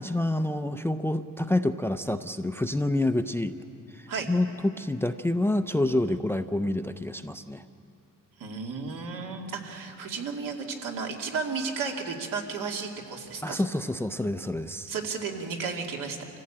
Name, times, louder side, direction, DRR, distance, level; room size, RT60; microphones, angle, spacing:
voice 1, 0.0-3.6 3.9-7.6 13.4-14.9, left 1 dB, 5° left, 10 dB, 0.4 m, -28 dB
voice 2, 8.4-13.7 14.9-16.2, right 5 dB, 80° right, 1 dB, 2.5 m, -33 dB
25.5 x 15.5 x 8.7 m, 2.7 s
cardioid pair, 140°, 32 cm